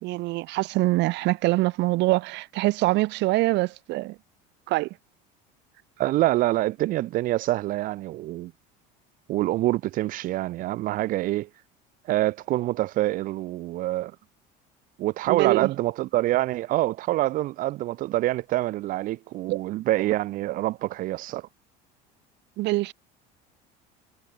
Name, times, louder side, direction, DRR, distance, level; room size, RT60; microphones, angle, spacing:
voice 1, 0.0-4.2 4.7-4.9 15.3-15.7 19.5-19.6 22.6-22.9, right 20 dB, 60° right, 1.1 m, -24 dB
voice 2, 6.0-8.5 9.3-11.5 12.1-14.1 15.0-21.5, right 16 dB, 45° right, 0.4 m, -26 dB
supercardioid pair, 120°, 20 cm